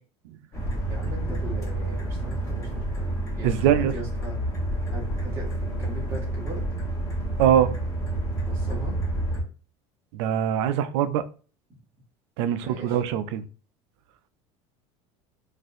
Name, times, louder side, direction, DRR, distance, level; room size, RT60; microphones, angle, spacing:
sound 1, 0.5-9.4, right 1 dB, 20° left, 1.1 m, -29 dB
voice 1, 0.9-3.1 3.4-4.4 4.9-6.6 8.5-8.9 12.6-13.0, right 1 dB, 20° right, 1.7 m, -39 dB
voice 2, 3.4-3.9 7.4-7.7 10.1-11.2 12.4-13.4, right 10 dB, 85° right, 0.4 m, -22 dB
4.1 x 2.5 x 2.5 m
cardioid pair, 145°, 14 cm